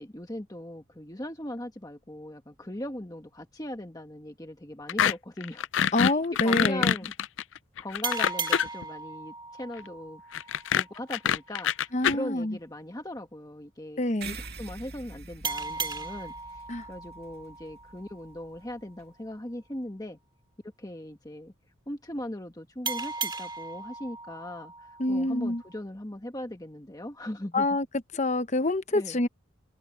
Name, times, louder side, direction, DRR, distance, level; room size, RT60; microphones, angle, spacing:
voice 1, 0.0-5.7 6.0-7.1 7.8-20.2 20.8-21.5 21.9-27.7 28.9-29.2, left 1 dB, 20° left, 1.4 m, -39 dB
sound 1, 4.9-5.1 5.4-8.8 10.3-12.1, left 8 dB, 70° left, 0.4 m, -25 dB
voice 2, 5.9-6.9 11.9-12.6 14.0-14.4 16.7-16.9 25.0-25.6 27.5-27.9 28.1-29.3, left 2 dB, 35° left, 0.9 m, -26 dB
sound 2, 8.0-11.3 15.4-18.7 22.8-25.8, right 4 dB, 20° right, 2.3 m, -37 dB
sound 3, 14.2-19.0, right 4 dB, 50° right, 2.4 m, -46 dB
head